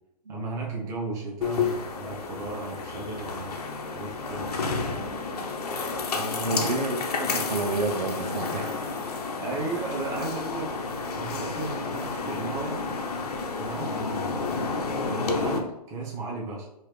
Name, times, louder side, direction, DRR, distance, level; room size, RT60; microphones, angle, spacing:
voice 1, 0.3-5.0 6.1-6.7 9.4-10.8 11.2-12.8 13.6-14.6 15.1-16.6, right 3 dB, 15° right, -3 dB, 0.8 m, -35 dB
sound 1, 1.4-15.6, left 4 dB, 65° left, 0.8 m, -31 dB
voice 2, 6.4-8.9, right 2 dB, 80° right, 3 dB, 0.9 m, -30 dB
4.8 x 2.9 x 3.2 m, 0.87 s
hypercardioid pair, 155°, 21 cm